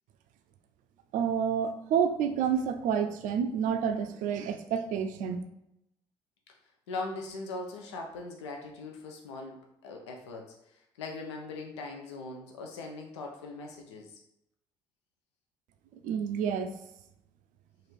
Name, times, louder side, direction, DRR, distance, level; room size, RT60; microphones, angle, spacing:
voice 1, 1.1-5.4 16.0-16.7, right 7 dB, 70° right, 8 dB, 0.4 m, -29 dB
voice 2, 6.9-9.6 9.8-14.2, left 3 dB, 90° left, 1 dB, 0.5 m, -40 dB
3.1 x 2.5 x 4.2 m, 0.82 s
hypercardioid pair, 50°, 14 cm